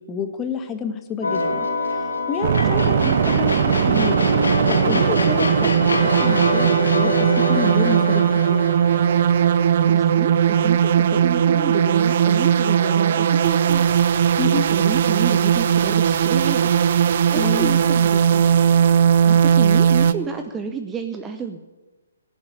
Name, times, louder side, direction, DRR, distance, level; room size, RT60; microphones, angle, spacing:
voice 1, 0.1-1.7 2.0-4.2 4.7-8.2 8.5-8.6 14.4-14.7 17.3-17.7, left 6 dB, 15° left, 6 dB, 1.5 m, -29 dB
sound 1, 1.2-10.5, left 2 dB, 75° left, 2.8 m, -25 dB
sound 2, 2.4-20.1, right 8 dB, 50° right, 0.7 m, -18 dB
voice 2, 9.9-13.9 14.7-16.6 17.3-18.4 19.2-21.6, right 6 dB, 15° right, 7 dB, 0.8 m, -31 dB
16.5 x 7.5 x 9.5 m, 1.2 s
figure-of-eight pair, 135°, 0 cm